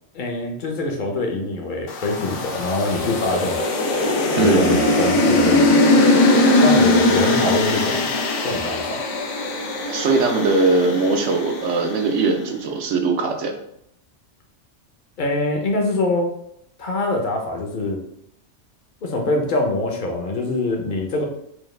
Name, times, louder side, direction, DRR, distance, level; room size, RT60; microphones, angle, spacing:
voice 1, 0.1-3.6 4.4-5.7 6.6-8.1 8.4-9.0 15.2-16.3 16.8-18.0 19.0-21.2, left 2 dB, 50° left, 2 dB, 0.7 m, -24 dB
sound 1, 1.9-12.2, left 2 dB, 85° left, 1.0 m, -20 dB
voice 2, 4.4-4.8 9.9-13.5, right 3 dB, 80° right, 4 dB, 1.0 m, -20 dB
4.7 x 2.3 x 3.2 m, 0.73 s
omnidirectional pair, 1.2 m